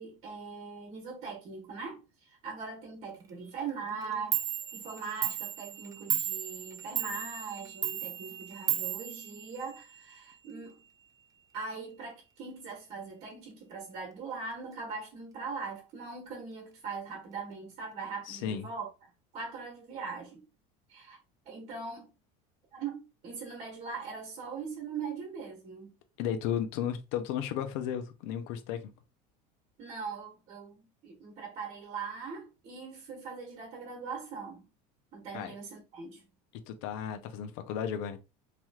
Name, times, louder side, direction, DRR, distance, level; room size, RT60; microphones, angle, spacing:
voice 1, 0.0-4.4 4.7-10.8 11.5-18.9 19.3-20.4 20.9-21.2 21.4-22.1 22.7-25.9 29.8-34.6 35.1-36.2, right 5 dB, 40° right, 1.2 m, -41 dB
Clock, 4.0-4.1 4.3-10.0, right 11 dB, 20° right, 0.3 m, -34 dB
voice 2, 18.3-18.6 26.2-28.9 35.3-35.5 36.7-38.2, left 9 dB, 75° left, 0.6 m, -34 dB
3.0 x 3.0 x 2.4 m
cardioid pair, 150°, 17 cm